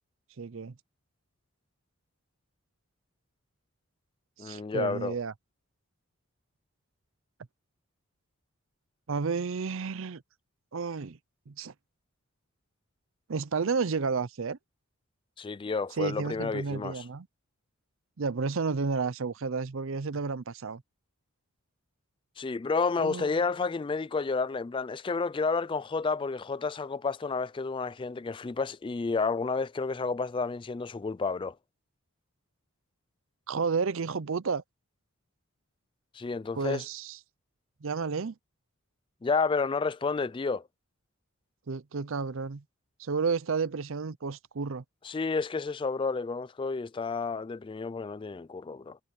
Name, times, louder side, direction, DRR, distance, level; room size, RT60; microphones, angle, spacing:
voice 1, 0.4-0.7 4.4-5.3 9.1-10.2 10.7-11.2 11.5-11.7 13.3-14.6 16.0-17.3 18.2-20.8 23.0-23.3 33.5-34.6 36.5-37.2 37.8-38.3 41.7-42.6 43.0-44.8, right 5 dB, 60° right, 0.6 m, -31 dB
voice 2, 4.4-5.1 15.4-17.0 22.4-31.6 36.1-36.8 39.2-40.6 45.0-49.0, left 4 dB, 20° left, 0.3 m, -30 dB
head